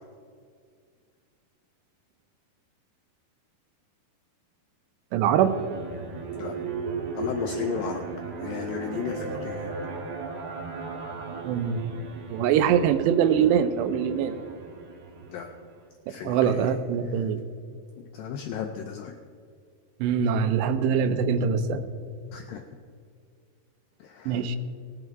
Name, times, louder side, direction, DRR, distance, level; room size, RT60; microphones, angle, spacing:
voice 1, 5.1-5.6 11.4-11.8 12.3-14.3 16.3-17.4 20.0-21.9 24.3-24.6, right 7 dB, 90° right, 10 dB, 2.9 m, -23 dB
sound 1, 5.4-15.9, right 4 dB, 75° right, 3.3 m, -36 dB
voice 2, 7.2-8.0 8.4-9.7 15.3-15.5 16.1-16.8 17.1-17.3 18.0-19.2 22.3-22.6 24.0-24.5, left 8 dB, 85° left, 4 dB, 2.0 m, -34 dB
18.5 x 8.0 x 4.6 m, 2.2 s
omnidirectional pair, 4.8 m